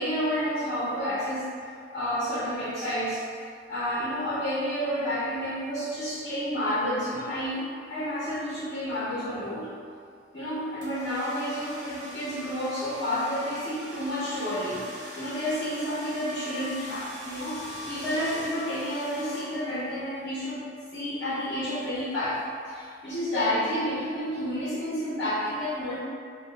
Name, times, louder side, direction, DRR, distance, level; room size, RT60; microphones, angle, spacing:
voice 1, 0.0-1.5 1.9-3.2 3.7-9.7 10.3-20.6 20.9-26.0, equal, 70° left, -11 dB, 0.9 m, -30 dB
sound 1, 10.8-19.9, equal, 85° right, 0.9 m, -42 dB
2.8 x 2.0 x 3.3 m, 2.2 s
head